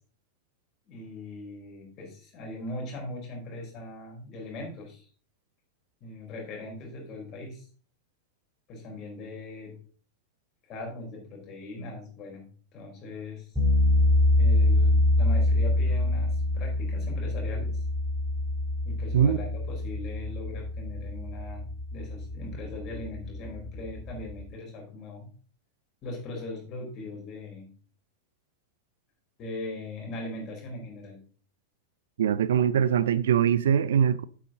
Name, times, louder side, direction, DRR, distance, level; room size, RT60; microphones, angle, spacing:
voice 1, 0.9-5.1 6.0-7.7 8.7-9.8 10.7-13.5 14.4-17.8 18.8-25.3 26.0-27.7 29.4-31.2, left 2 dB, 35° left, 4.5 m, -40 dB
sound 1, 13.6-24.4, left 2 dB, 5° right, 4.4 m, -25 dB
voice 2, 32.2-34.2, right 8 dB, 60° right, 0.4 m, -22 dB
9.0 x 8.3 x 3.9 m
figure-of-eight pair, 90°, 0 cm